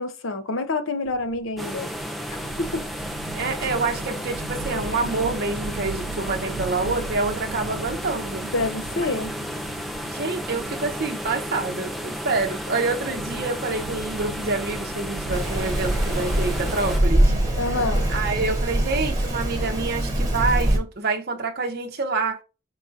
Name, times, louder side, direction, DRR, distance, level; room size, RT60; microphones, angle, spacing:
voice 1, 0.0-1.9 2.6-2.8 8.5-9.3 17.5-18.1, left 3 dB, 70° left, 0.7 m, -27 dB
sound 1, 1.1-19.1, right 4 dB, 75° right, 0.4 m, -39 dB
sound 2, 1.6-17.0, equal, ahead, 0.4 m, -33 dB
voice 2, 3.3-8.4 9.0-9.1 10.1-17.3 17.7-17.8 18.1-22.4, right 3 dB, 50° right, 0.7 m, -27 dB
Rain, 15.3-20.8, right 1 dB, 15° right, 1.7 m, -23 dB
4.7 x 3.6 x 2.6 m
head